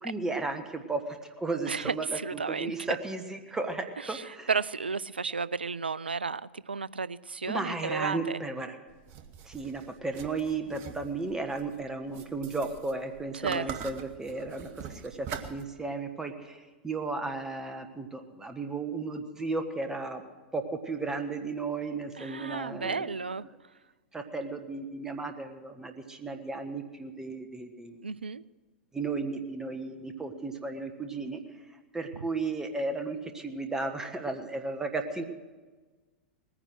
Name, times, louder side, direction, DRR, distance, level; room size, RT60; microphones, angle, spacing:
voice 1, 0.0-4.5 7.5-8.8 9.4-20.2 20.5-23.1 24.1-28.0 28.9-35.2, right 3 dB, 10° right, 7 dB, 1.2 m, -34 dB
voice 2, 1.7-2.9 4.0-8.4 13.3-13.7 22.2-23.4 28.0-28.4 32.2-32.3, right 5 dB, 85° right, 20 dB, 0.4 m, -33 dB
sound 1, 8.9-15.6, right 7 dB, 40° right, 1.1 m, -43 dB
19.0 x 9.9 x 6.3 m, 1.3 s
figure-of-eight pair, 95°, 5 cm